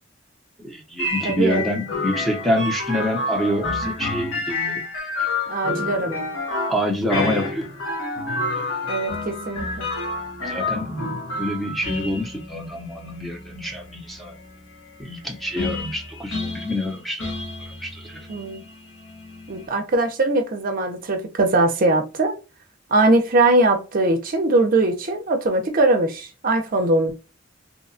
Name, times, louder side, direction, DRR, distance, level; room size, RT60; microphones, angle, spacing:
voice 1, 0.6-4.8 6.0-6.1 6.7-7.7 8.5-8.7 10.4-14.3 15.0-17.3 17.7-18.3, left 1 dB, ahead, 0.6 m, -27 dB
sound 1, 1.0-19.7, left 2 dB, 90° left, 0.9 m, -30 dB
voice 2, 1.2-1.6 5.5-6.3 8.9-9.9 18.3-18.6 19.5-22.4 22.9-27.1, right 2 dB, 45° right, 0.5 m, -21 dB
2.8 x 2.2 x 2.5 m
head